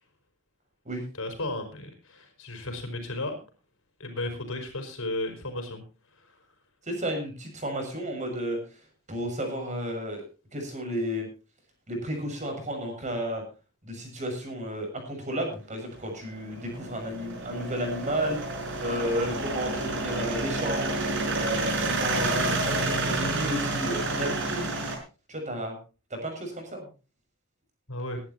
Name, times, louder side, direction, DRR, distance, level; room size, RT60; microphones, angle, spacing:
voice 1, 1.2-3.4 4.0-5.8 6.1-6.5 27.9-28.2, left 2 dB, 70° left, 5 dB, 5.1 m, -34 dB
voice 2, 6.8-8.8 9.1-10.2 10.5-11.3 11.9-13.4 13.8-18.4 18.8-20.9 21.3-24.7 25.3-25.8 26.1-26.9, equal, 35° right, 3 dB, 6.9 m, -32 dB
sound 1, 15.9-25.0, right 2 dB, 60° right, 5.7 m, -29 dB
22.5 x 11.5 x 2.9 m, 0.33 s
head